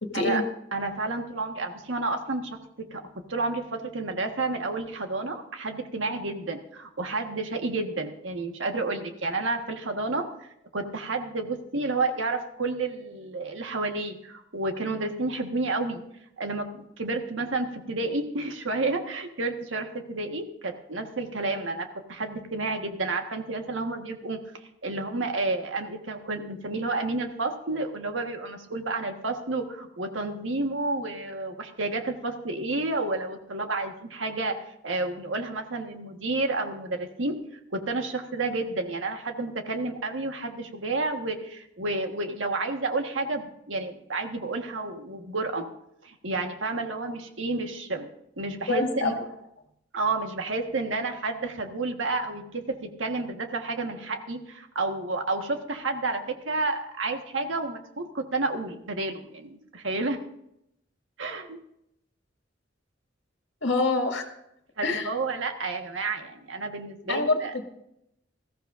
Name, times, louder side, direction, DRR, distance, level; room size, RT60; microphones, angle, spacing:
voice 1, 0.0-0.4 48.7-49.2 63.6-64.2 64.8-65.1 67.1-67.4, left 3 dB, 65° left, 3 dB, 2.1 m, -25 dB
voice 2, 0.7-3.0 3.3-16.0 16.4-34.6 34.8-37.3 37.7-45.6 46.0-48.1 48.4-49.2 49.9-60.2 61.2-61.6 64.8-67.5, right 3 dB, 85° right, 4 dB, 1.5 m, -30 dB
20.0 x 14.5 x 2.6 m, 0.79 s
head